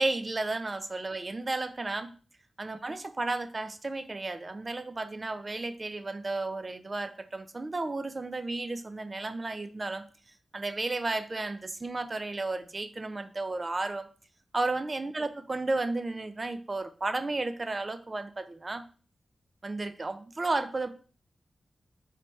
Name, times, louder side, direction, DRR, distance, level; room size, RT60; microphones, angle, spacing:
voice 1, 0.0-2.1 2.6-10.0 10.5-14.1 14.5-18.8 19.6-20.9, right 2 dB, 40° right, 11 dB, 0.5 m, -33 dB
4.0 x 3.3 x 3.2 m, 0.39 s
cardioid pair, 60°, 0 cm